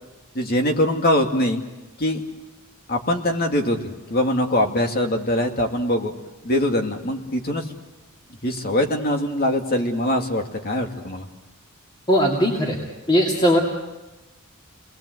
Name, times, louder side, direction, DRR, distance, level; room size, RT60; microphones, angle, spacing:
voice 1, 0.3-1.6 2.0-2.2 2.9-3.8 4.1-6.1 6.4-7.6 8.4-11.3, left 1 dB, 45° left, 3 dB, 2.5 m, -22 dB
voice 2, 12.1-12.8 13.1-13.6, equal, 20° left, -2 dB, 2.5 m, -18 dB
29.5 x 20.5 x 8.0 m, 1.1 s
head